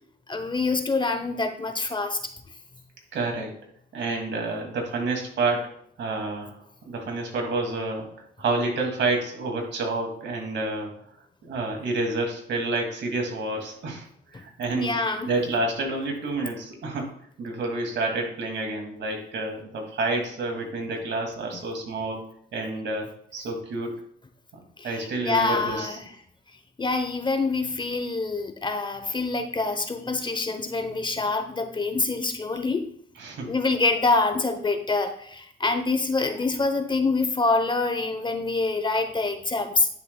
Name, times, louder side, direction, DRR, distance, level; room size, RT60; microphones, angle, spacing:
voice 1, 0.3-2.2 14.7-15.3 21.5-21.6 24.8-26.0 26.8-32.9 33.5-39.9, left 3 dB, 25° left, 8 dB, 0.8 m, -26 dB
voice 2, 3.1-3.5 3.9-5.7 6.0-6.6 6.8-8.1 8.4-10.9 11.4-14.1 14.3-15.0 15.2-17.1 17.4-22.2 22.5-23.9 24.8-26.0 33.1-33.5, right 2 dB, 65° right, 2 dB, 2.4 m, -29 dB
10.5 x 6.7 x 2.3 m, 0.64 s
cardioid pair, 90°, 20 cm